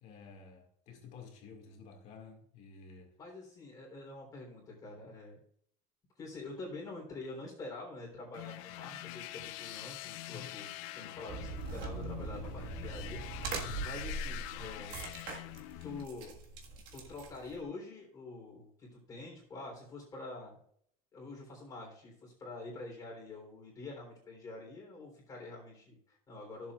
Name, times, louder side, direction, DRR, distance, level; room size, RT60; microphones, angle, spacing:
voice 1, 0.0-3.1 10.3-10.6 13.6-13.9, left 5 dB, 40° left, 1.9 m, -51 dB
voice 2, 3.2-5.4 6.2-13.2 13.8-15.0 15.8-16.4 16.9-20.6 21.1-26.7, left 2 dB, 20° left, 3.4 m, -46 dB
sound 1, 8.3-16.1, left 16 dB, 65° left, 0.6 m, -45 dB
sound 2, 11.3-17.6, right 3 dB, 50° right, 1.7 m, -42 dB
15.0 x 7.2 x 2.4 m
cardioid pair, 175°, 18 cm